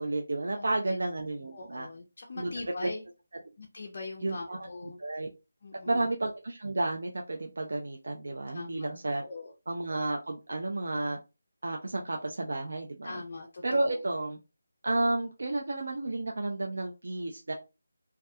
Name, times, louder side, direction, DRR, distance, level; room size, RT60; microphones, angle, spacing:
voice 1, 0.0-1.9 2.4-2.5 2.8-2.9 4.2-4.7 5.0-5.3 5.9-9.2 9.7-11.2 11.6-13.2 13.6-14.4 14.8-17.5, right 2 dB, 60° right, 0.4 m, -31 dB
voice 2, 0.5-1.0 1.5-3.0 3.6-5.0 5.6-6.1 8.5-8.9 9.2-9.5 13.0-13.9, left 3 dB, 35° left, 0.3 m, -42 dB
2.2 x 2.2 x 2.6 m
figure-of-eight pair, 180°, 0 cm